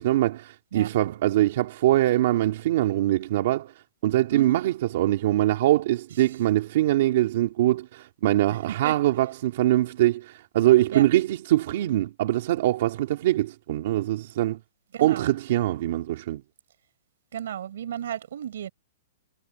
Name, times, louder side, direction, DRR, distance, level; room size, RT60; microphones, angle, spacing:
voice 1, 0.0-3.7 4.0-14.6 15.0-16.4, right 14 dB, 45° right, 2.0 m, -23 dB
voice 2, 14.9-15.3 17.3-18.7, right 10 dB, 60° right, 4.4 m, -33 dB
hypercardioid pair, 170°, 0 cm